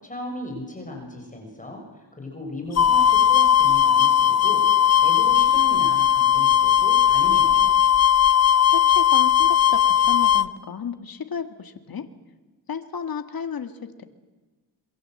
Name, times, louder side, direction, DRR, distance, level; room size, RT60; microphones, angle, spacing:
voice 1, 0.0-7.8, left 1 dB, 20° left, 2 dB, 6.5 m, -36 dB
sound 1, 2.8-10.5, left 10 dB, 40° left, 0.8 m, -18 dB
voice 2, 8.7-12.1 12.7-14.0, left 6 dB, 55° left, 8 dB, 1.9 m, -33 dB
26.5 x 23.0 x 7.8 m, 1.2 s
cardioid pair, 95°, 42 cm